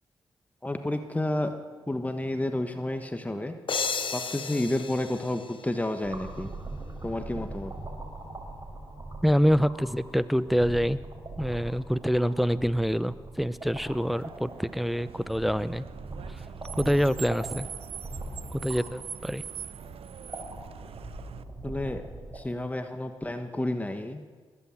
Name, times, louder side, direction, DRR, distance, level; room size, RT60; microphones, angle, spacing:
voice 1, 0.6-1.6 1.9-3.5 4.1-6.5 7.0-7.7 21.6-22.0 22.3-24.2, left 1 dB, 15° left, 7 dB, 1.3 m, -30 dB
sound 1, 3.7-6.4, left 5 dB, 55° left, 1.1 m, -34 dB
sound 2, 6.0-22.4, right 2 dB, 35° right, 4.9 m, -42 dB
voice 2, 9.2-11.0 11.4-15.9 16.3-16.4 16.8-17.7 18.5-19.4, equal, ahead, 15 dB, 0.7 m, -26 dB
Car, 13.9-21.4, right 8 dB, 70° right, 0.6 m, -43 dB
20.5 x 8.5 x 7.7 m, 1.5 s
supercardioid pair, 45°, 10 cm